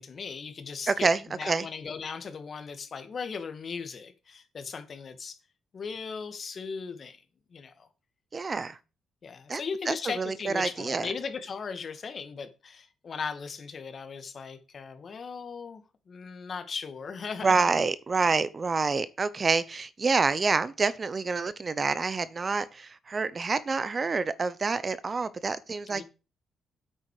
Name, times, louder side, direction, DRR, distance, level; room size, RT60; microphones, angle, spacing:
voice 1, 0.0-1.1 1.3-5.4 5.7-7.2 7.5-7.9 9.2-17.8 25.9-26.0, left 5 dB, 50° left, 2.1 m, -38 dB
voice 2, 0.9-1.7 8.3-8.8 9.5-9.6 9.9-11.1 17.4-26.0, right 4 dB, 35° right, 0.8 m, -27 dB
9.0 x 8.1 x 5.0 m
cardioid pair, 85°, 0 cm